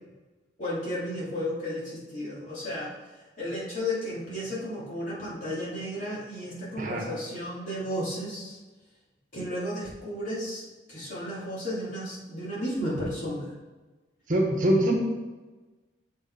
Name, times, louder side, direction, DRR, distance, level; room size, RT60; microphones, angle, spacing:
voice 1, 0.6-2.9 3.4-8.6 9.3-13.5, equal, 45° left, -7 dB, 2.8 m, -33 dB
voice 2, 14.3-14.9, right 1 dB, 45° right, 0 dB, 1.3 m, -23 dB
7.1 x 5.6 x 4.8 m, 1.2 s
head